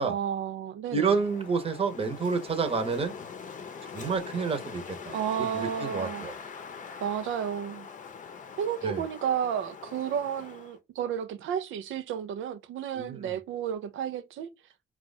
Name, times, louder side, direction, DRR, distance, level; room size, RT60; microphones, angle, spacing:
voice 1, 0.0-1.2 5.1-6.3 7.0-7.9 8.6-14.5, right 9 dB, 80° right, 0.6 m, -32 dB
Wind, 0.9-10.8, left 6 dB, 40° left, 0.7 m, -43 dB
voice 2, 0.9-3.1 3.8-6.3 8.8-9.0 12.9-13.3, right 5 dB, 30° right, 0.9 m, -29 dB
4.4 x 2.4 x 4.0 m
cardioid pair, 90°, 20 cm